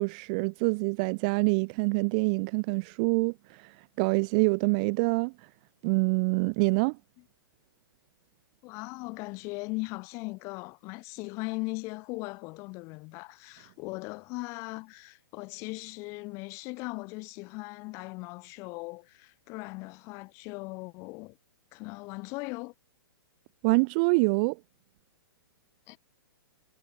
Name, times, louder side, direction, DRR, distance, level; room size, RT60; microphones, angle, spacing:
voice 1, 0.0-5.5 5.8-7.0 23.6-24.6, right 32 dB, 20° right, 0.4 m, -26 dB
voice 2, 8.6-21.4 21.7-22.7 25.9-26.0, left 27 dB, 25° left, 3.4 m, -39 dB
hypercardioid pair, 170°, 13 cm